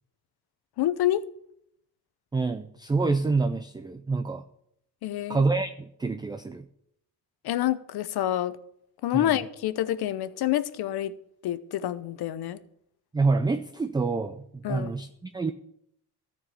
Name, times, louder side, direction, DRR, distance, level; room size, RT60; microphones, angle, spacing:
voice 1, 0.8-1.2 5.0-5.4 7.4-8.6 9.0-11.1 11.4-12.6 14.6-14.9, left 13 dB, 65° left, 15 dB, 0.8 m, -27 dB
voice 2, 2.3-4.4 5.3-6.7 9.1-9.4 13.1-15.5, right 3 dB, 10° right, 10 dB, 0.4 m, -27 dB
13.5 x 4.7 x 8.4 m, 0.73 s
cardioid pair, 115°, 41 cm